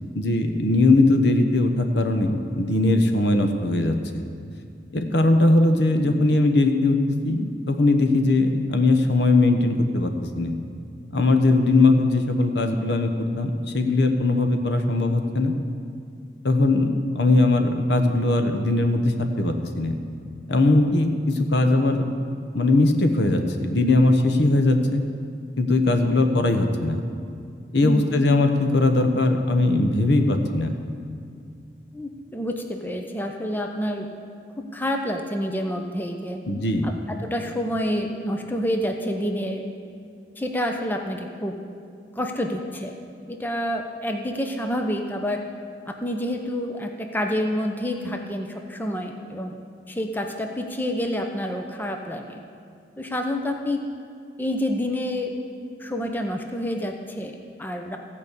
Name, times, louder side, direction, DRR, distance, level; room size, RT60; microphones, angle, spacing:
voice 1, 0.1-4.2 4.9-7.0 7.2-10.1 10.4-10.6 11.1-13.1 13.4-15.5 16.4-16.9 17.1-20.0 20.5-22.1 22.5-23.4 23.7-25.0 25.6-27.0 27.7-30.7 36.5-36.9, left 2 dB, 80° left, 6 dB, 1.0 m, -20 dB
voice 2, 27.8-28.3 31.9-34.1 34.7-36.4 36.8-39.7 40.4-41.6 42.2-42.9 43.3-45.4 45.9-49.6 49.9-52.4 53.0-53.8 54.4-55.3 55.8-58.0, equal, 10° left, 3 dB, 0.6 m, -28 dB
15.0 x 5.2 x 8.2 m, 2.3 s
head